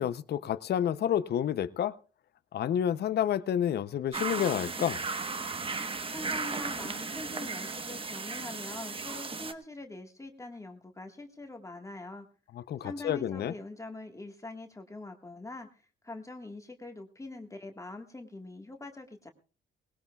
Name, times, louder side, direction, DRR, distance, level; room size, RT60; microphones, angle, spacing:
voice 1, 0.0-1.9 2.5-5.0 12.6-13.5, left 9 dB, 55° left, 0.6 m, -29 dB
sound 1, 4.1-9.5, right 4 dB, 25° right, 1.1 m, -35 dB
voice 2, 6.1-12.2 12.8-15.7 16.0-19.3, left 2 dB, 15° left, 1.5 m, -43 dB
19.5 x 18.0 x 2.3 m
cardioid pair, 90°, 20 cm